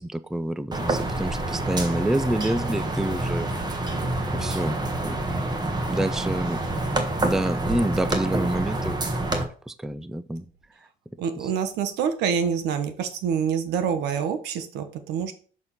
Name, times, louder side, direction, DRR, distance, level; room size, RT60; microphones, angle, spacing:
voice 1, 0.0-3.5 4.3-4.8 5.0-5.2 5.9-6.6 7.2-10.5, right 1 dB, 5° right, 14 dB, 0.4 m, -28 dB
sound 1, 0.7-9.4, right 2 dB, 25° right, 1.4 m, -27 dB
voice 2, 11.2-15.3, right 7 dB, 85° right, 9 dB, 1.2 m, -26 dB
6.6 x 4.4 x 5.7 m, 0.42 s
cardioid pair, 110°, 17 cm